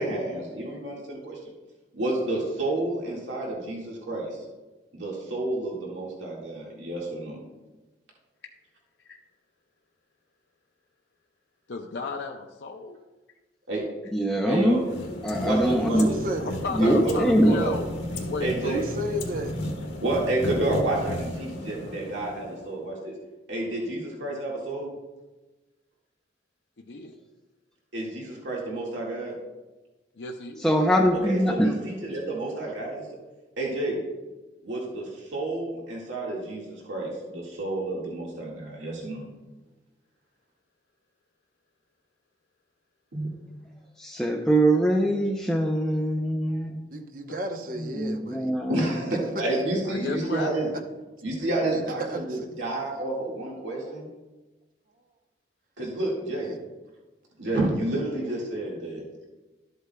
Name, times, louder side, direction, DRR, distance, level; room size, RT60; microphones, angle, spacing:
voice 1, 0.0-1.4 1.9-4.4 4.9-7.4 13.7-13.8 14.4-14.9 15.4-16.2 16.8-17.7 18.4-18.8 20.0-23.2 23.5-24.9 27.9-29.4 31.3-33.1 33.6-34.0 34.6-39.3 43.1-43.3 48.7-50.7 51.2-54.1 55.8-56.6 57.4-59.0, right 2 dB, 85° right, -3 dB, 1.8 m, -30 dB
voice 2, 11.7-13.0 16.4-17.8 18.3-18.8 26.8-27.1 30.2-30.7 49.8-50.5, left 3 dB, 65° left, 2 dB, 0.5 m, -34 dB
voice 3, 14.1-14.8 15.2-16.1 16.8-17.6 30.6-32.0 44.0-46.9 47.8-49.1, right 1 dB, 5° left, 0 dB, 0.4 m, -23 dB
sound 1, 14.5-22.8, left 1 dB, 90° left, 1.5 m, -34 dB
voice 4, 15.9-16.6 18.6-19.6 46.9-48.5 49.5-49.6 51.7-51.8 52.1-52.4, equal, 45° right, 4 dB, 0.8 m, -33 dB
13.0 x 8.1 x 2.2 m, 1.2 s
head